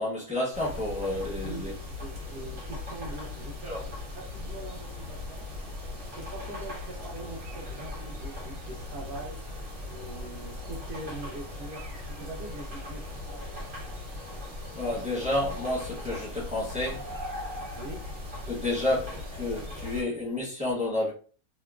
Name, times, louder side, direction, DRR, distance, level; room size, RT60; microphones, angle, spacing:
voice 1, 0.0-1.7 3.6-3.8 14.7-17.1 18.5-21.1, left 1 dB, 5° right, 0.6 m, -30 dB
sound 1, 0.5-20.0, left 2 dB, 40° right, 1.3 m, -39 dB
voice 2, 2.0-5.5 6.0-9.4 9.9-13.7 17.8-18.3, right 2 dB, 60° right, 0.6 m, -42 dB
2.9 x 2.1 x 2.3 m
omnidirectional pair, 1.5 m